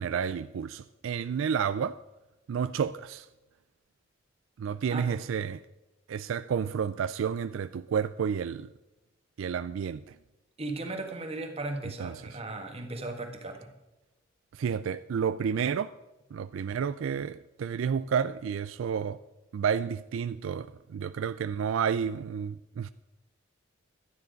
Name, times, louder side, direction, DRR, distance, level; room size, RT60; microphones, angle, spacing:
voice 1, 0.0-2.0 2.5-3.3 4.6-5.6 6.1-8.7 9.4-10.2 12.0-12.4 14.5-15.9 16.3-19.2 19.5-22.9, right 7 dB, 75° right, 14 dB, 0.3 m, -30 dB
voice 2, 10.6-13.7, right 2 dB, 30° right, 4 dB, 1.5 m, -36 dB
12.0 x 9.8 x 5.1 m, 1.0 s
head